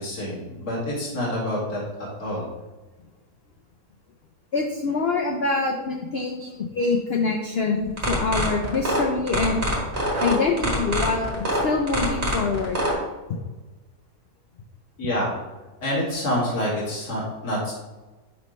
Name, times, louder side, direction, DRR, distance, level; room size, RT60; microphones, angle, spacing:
voice 1, 0.0-2.5 15.0-15.4 15.8-17.7, left 1 dB, 60° left, -7 dB, 2.7 m, -27 dB
voice 2, 4.5-9.6 10.2-12.8, left 4 dB, 80° left, 2 dB, 0.5 m, -25 dB
sound 1, 7.9-12.9, right 1 dB, 40° right, 1.8 m, -24 dB
6.0 x 3.2 x 5.3 m, 1.2 s
omnidirectional pair, 1.8 m